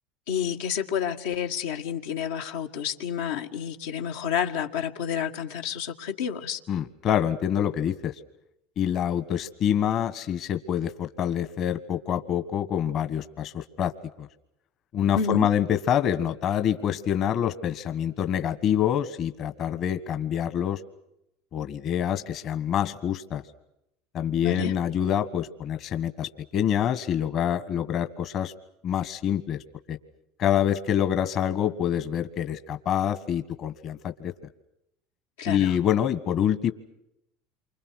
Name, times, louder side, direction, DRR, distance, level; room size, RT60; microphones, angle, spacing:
voice 1, 0.3-6.6 15.2-15.5 24.4-24.8 35.4-35.8, left 7 dB, 85° left, 2 dB, 1.9 m, -30 dB
voice 2, 6.7-8.1 8.8-13.9 14.2-14.3 14.9-20.8 21.5-23.4 24.1-28.5 28.8-29.6 29.9-30.0 30.4-34.3 35.5-36.7, left 9 dB, 50° left, 10 dB, 1.5 m, -26 dB
28.0 x 25.5 x 6.4 m, 0.82 s
supercardioid pair, 105°, 0 cm